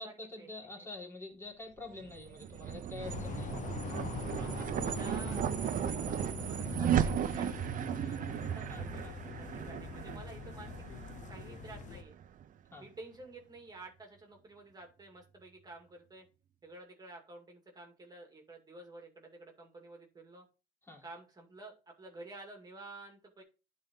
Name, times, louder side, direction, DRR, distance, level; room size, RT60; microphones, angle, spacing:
voice 1, 0.0-3.6 6.8-6.9 8.7-9.1 12.7-12.9 20.8-21.0, left 2 dB, 15° left, 3.3 m, -46 dB
sound 1, 1.9-12.4, right 9 dB, 50° right, 0.7 m, -36 dB
sound 2, 3.0-12.0, left 6 dB, 45° left, 0.7 m, -43 dB
voice 2, 4.4-10.8 11.3-12.2 12.8-16.3 16.6-20.4 21.0-23.4, right 2 dB, 25° right, 2.3 m, -51 dB
10.5 x 4.1 x 3.7 m
cardioid pair, 110°, 17 cm